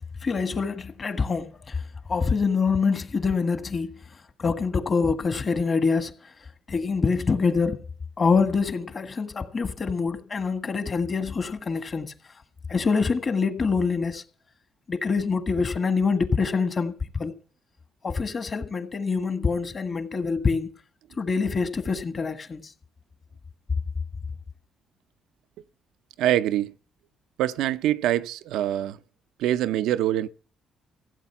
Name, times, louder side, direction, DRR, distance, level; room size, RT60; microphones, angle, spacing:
voice 1, 0.2-1.8 2.1-3.9 4.4-6.1 6.7-7.8 8.2-12.1 12.7-14.2 14.9-17.3 18.0-20.7 21.2-22.7, left 4 dB, 40° left, 1.6 m, -25 dB
voice 2, 26.2-26.7 27.4-29.0 29.4-30.3, right 12 dB, 90° right, 0.5 m, -24 dB
15.5 x 8.0 x 5.8 m
cardioid pair, 90°, 0 cm